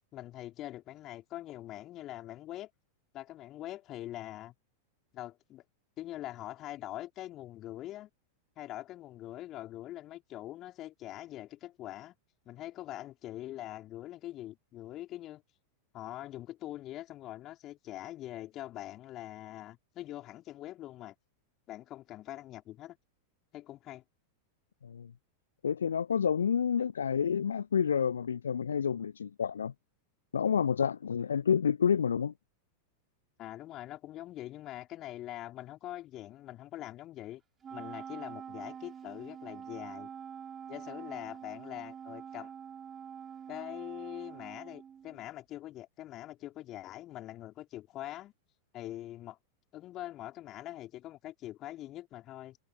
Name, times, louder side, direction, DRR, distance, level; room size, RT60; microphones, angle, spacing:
voice 1, 0.1-2.7 3.1-4.5 5.1-5.6 6.0-8.1 8.6-12.2 12.5-15.4 15.9-21.1 21.7-23.0 23.5-24.0 33.4-37.4 37.7-40.1 40.7-42.5 43.5-48.3 48.7-49.4 49.7-52.6, left 14 dB, 35° left, 3.6 m, -43 dB
voice 2, 25.6-29.7 30.3-32.3, left 7 dB, 70° left, 0.6 m, -29 dB
Wind instrument woodwind instrument, 37.6-45.3, right 8 dB, 25° right, 2.7 m, -46 dB
figure-of-eight pair, 90°, 0 cm